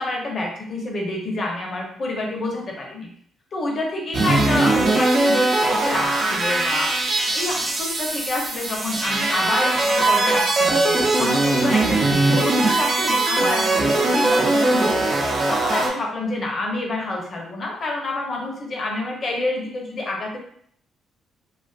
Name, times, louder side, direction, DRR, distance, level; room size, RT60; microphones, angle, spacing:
voice 1, 0.0-3.1 3.5-6.9 7.3-12.1 12.3-15.0 15.5-20.4, left 2 dB, 45° left, -1 dB, 0.7 m, -28 dB
sound 1, 4.1-15.9, right 2 dB, 45° right, 0.6 m, -20 dB
2.4 x 2.4 x 2.4 m, 0.63 s
cardioid pair, 90°, 0 cm